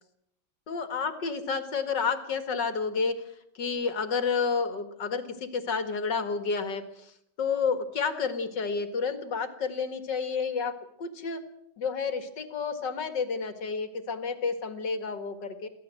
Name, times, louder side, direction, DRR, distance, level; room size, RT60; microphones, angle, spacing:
voice 1, 0.7-3.2 3.5-10.7 11.0-11.4 11.8-15.7, left 5 dB, 80° left, 9 dB, 2.7 m, -30 dB
23.5 x 16.0 x 7.8 m, 0.73 s
omnidirectional pair, 1.9 m